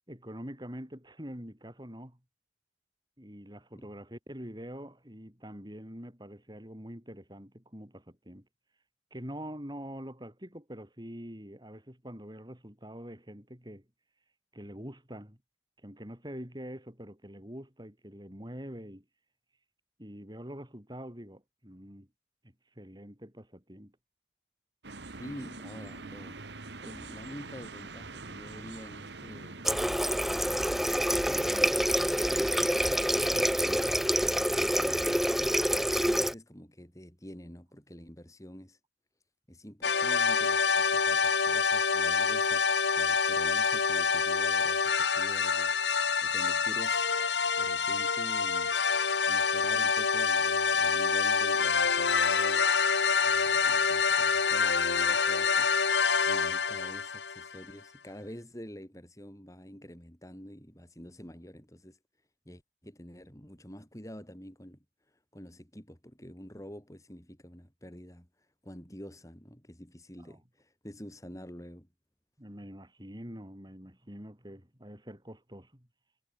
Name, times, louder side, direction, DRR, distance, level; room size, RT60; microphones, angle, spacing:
voice 1, 0.1-2.2 3.2-8.5 9.1-13.8 14.5-15.4 15.8-19.0 20.0-22.1 22.8-23.9 70.3-70.4 72.4-75.9, equal, 25° right, 5.8 m, -45 dB
sound 1, 24.8-29.8, right 3 dB, 75° right, 2.0 m, -44 dB
voice 2, 25.2-26.4 26.8-35.3 35.9-38.8 39.5-42.6 42.9-47.1 47.6-48.8 49.3-52.7 53.2-55.8 56.3-62.0 62.4-64.8 65.3-68.3 68.6-71.9, equal, 20° left, 5.1 m, -47 dB
Water tap faucet, 29.7-36.3, equal, ahead, 0.4 m, -27 dB
sound 2, 39.8-57.6, left 5 dB, 80° left, 2.1 m, -26 dB
head